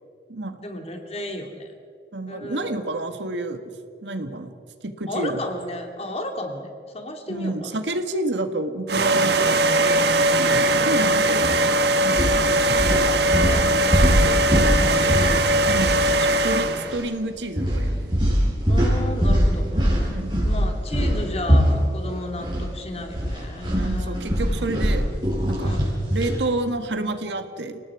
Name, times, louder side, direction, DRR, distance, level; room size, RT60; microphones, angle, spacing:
voice 1, 0.6-1.7 2.3-2.8 5.1-7.7 11.3-11.6 13.4-15.7 16.1-16.5 18.7-20.1 20.4-24.2 25.6-26.0, left 1 dB, 35° left, 4 dB, 2.6 m, -33 dB
voice 2, 2.1-3.6 4.0-4.5 4.8-5.4 7.3-12.9 15.7-16.1 16.4-18.3 20.1-20.4 23.7-25.1 25.4-25.8 26.1-27.8, right 2 dB, 85° right, 8 dB, 1.7 m, -29 dB
sound 1, 8.9-17.0, right 1 dB, 65° right, 1.2 m, -20 dB
sound 2, 11.4-11.6 12.1-16.6 16.8-17.0 17.6-22.7 23.0-26.4, equal, 25° right, 6.2 m, -22 dB
29.5 x 18.5 x 4.9 m, 2.3 s
head